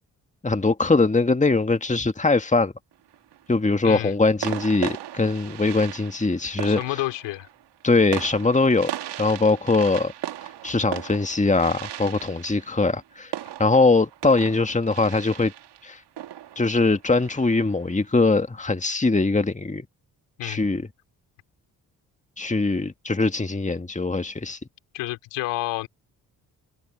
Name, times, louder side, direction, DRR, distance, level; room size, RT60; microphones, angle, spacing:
voice 1, 0.4-2.7 3.5-6.8 7.8-8.9 9.2-10.1 10.6-13.3 13.6-15.5 15.8-16.0 16.6-19.9 20.4-20.9 22.4-24.6, left 3 dB, 15° left, 1.9 m, -21 dB
sound 1, 2.9-3.5 4.4-17.8, right 12 dB, 75° right, 1.9 m, -37 dB
voice 2, 3.8-4.2 6.6-7.5 20.4-20.7 24.9-25.9, left 17 dB, 85° left, 2.8 m, -29 dB
hypercardioid pair, 45°, 42 cm